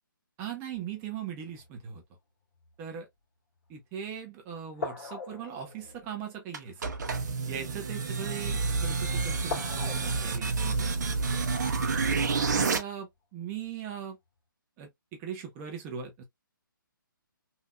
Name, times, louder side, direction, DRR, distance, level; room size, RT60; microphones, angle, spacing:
voice 1, 0.4-2.0 2.8-3.1 3.7-7.0 7.5-11.0 12.5-14.2 14.8-14.9 15.2-16.2, right 8 dB, 15° right, 0.7 m, -39 dB
sound 1, 0.7-2.0 2.5-2.8 3.7-3.8 4.7-8.4 8.9-9.1 9.4-12.9 13.6-13.8, left 4 dB, 40° left, 1.9 m, -43 dB
sound 2, 6.5-12.8, right 4 dB, 50° right, 0.8 m, -29 dB
3.4 x 2.8 x 2.2 m
hypercardioid pair, 150°, 12 cm